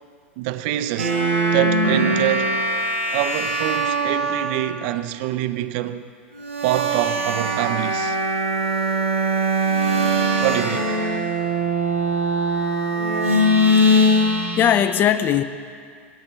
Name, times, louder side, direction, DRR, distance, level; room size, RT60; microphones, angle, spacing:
voice 1, 0.4-1.2 1.5-2.6 3.1-6.1 6.6-8.2 10.4-11.0, right 14 dB, 50° right, 0.4 m, -25 dB
sound 1, 1.0-4.6 6.3-14.7, right 1 dB, 90° right, 2.0 m, -21 dB
voice 2, 14.6-15.4, left 10 dB, 30° left, 0.5 m, -19 dB
17.5 x 9.3 x 3.1 m
figure-of-eight pair, 90°, 7 cm